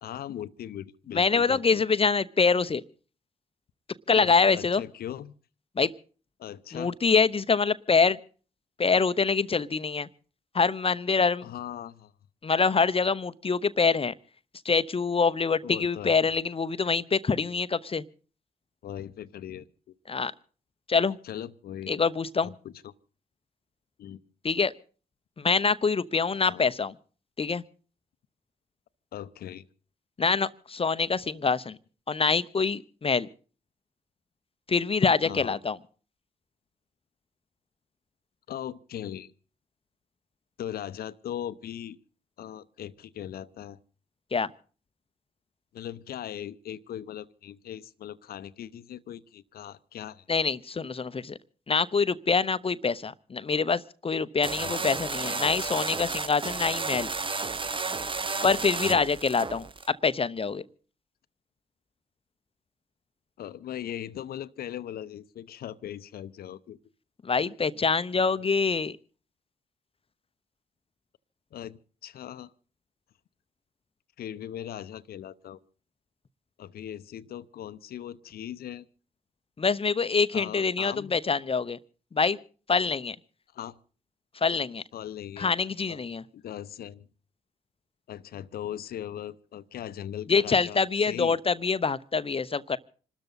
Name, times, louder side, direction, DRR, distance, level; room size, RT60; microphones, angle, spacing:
voice 1, 0.0-1.8 4.1-5.4 6.4-6.9 11.4-12.1 15.6-16.3 18.8-19.9 21.2-22.0 22.4-22.9 24.0-24.2 26.5-26.7 29.1-29.7 35.2-35.6 38.5-39.3 40.6-42.0 42.4-43.8 45.7-50.2 54.6-54.9 58.8-59.0 63.4-66.8 71.5-72.5 74.2-75.6 76.6-78.8 80.3-81.1 83.5-83.8 84.9-85.5 85.9-86.1 86.3-87.1 88.1-91.4, left 10 dB, 60° left, 15 dB, 0.8 m, -39 dB
voice 2, 1.1-2.8 4.1-4.8 5.8-5.9 6.7-8.2 8.8-10.1 10.5-11.5 12.4-14.1 14.6-18.0 20.1-20.3 20.9-21.2 21.9-22.5 24.4-24.7 25.4-26.9 27.4-27.6 30.2-31.8 32.1-33.3 34.7-35.8 44.3-44.5 50.3-51.4 51.7-57.1 58.4-60.6 67.2-69.0 79.6-81.8 82.1-82.4 82.7-83.2 84.4-84.8 85.4-86.2 90.3-92.8, left 5 dB, 30° left, 15 dB, 0.8 m, -25 dB
sound 1, 54.4-59.9, right 4 dB, 30° right, 1.0 m, -32 dB
26.5 x 13.0 x 4.1 m, 0.40 s
hypercardioid pair, 40°, 18 cm